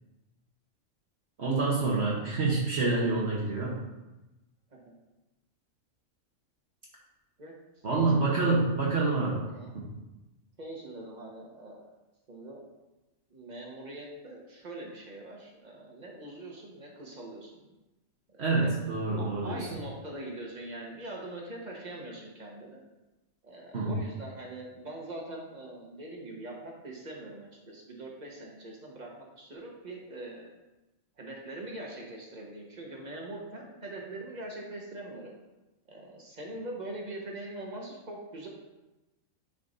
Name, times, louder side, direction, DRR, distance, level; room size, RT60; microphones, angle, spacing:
voice 1, 1.4-3.8 7.8-9.4 9.7-9.9 18.4-19.7 23.7-24.0, right 3 dB, 55° right, -5 dB, 1.3 m, -27 dB
voice 2, 7.9-8.5 9.5-9.7 10.6-11.8 12.3-12.6 13.3-17.6 18.3-18.7 19.2-22.8 23.4-30.5 31.2-35.3 35.9-38.5, right 1 dB, 35° right, -2 dB, 1.4 m, -42 dB
9.5 x 5.2 x 2.7 m, 1.0 s
omnidirectional pair, 1.4 m